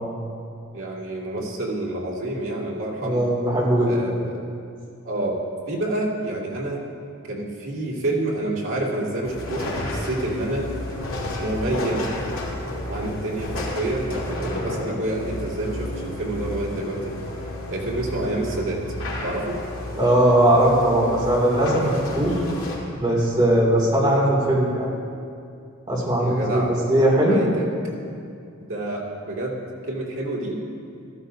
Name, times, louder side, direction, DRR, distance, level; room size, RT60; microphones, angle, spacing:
voice 1, 0.7-3.2 3.9-4.4 5.0-5.4 5.7-6.8 7.2-10.7 11.4-12.1 12.8-17.1 17.7-18.8 19.2-19.6 26.2-26.7 27.3-27.7 28.6-30.6, right 2 dB, 70° right, -4 dB, 2.3 m, -28 dB
voice 2, 3.0-3.9 20.0-22.4 23.0-24.9 25.9-27.4, right 1 dB, 20° right, -5 dB, 2.5 m, -19 dB
sound 1, 9.2-22.8, left 1 dB, 75° left, 2.4 m, -31 dB
14.0 x 14.0 x 2.7 m, 2.4 s
head